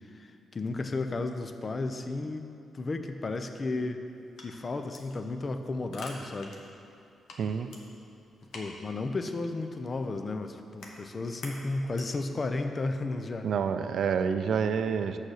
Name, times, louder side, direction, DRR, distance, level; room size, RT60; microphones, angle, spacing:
voice 1, 0.1-4.0 4.4-6.6 8.5-13.5, left 3 dB, 45° left, 7 dB, 0.6 m, -33 dB
sound 1, 4.1-12.3, left 2 dB, 75° left, 1.1 m, -50 dB
voice 2, 7.4-7.7 13.4-15.2, right 6 dB, 70° right, 9 dB, 0.4 m, -28 dB
6.4 x 5.8 x 6.4 m, 2.6 s
supercardioid pair, 55°, 0 cm